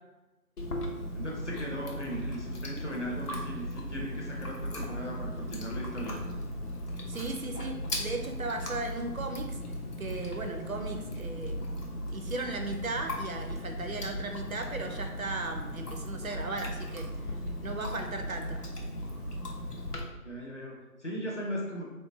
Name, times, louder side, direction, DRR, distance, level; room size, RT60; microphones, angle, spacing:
Chewing mastication, 0.6-20.0, equal, 85° left, 0.8 m, -37 dB
voice 1, 1.1-6.2 20.2-21.8, equal, 50° left, -2 dB, 0.8 m, -38 dB
voice 2, 7.1-9.6 10.0-11.7 12.1-17.1 17.6-18.6, right 2 dB, 65° right, 4 dB, 0.5 m, -36 dB
3.6 x 2.2 x 3.0 m, 1.1 s
figure-of-eight pair, 165°, 45 cm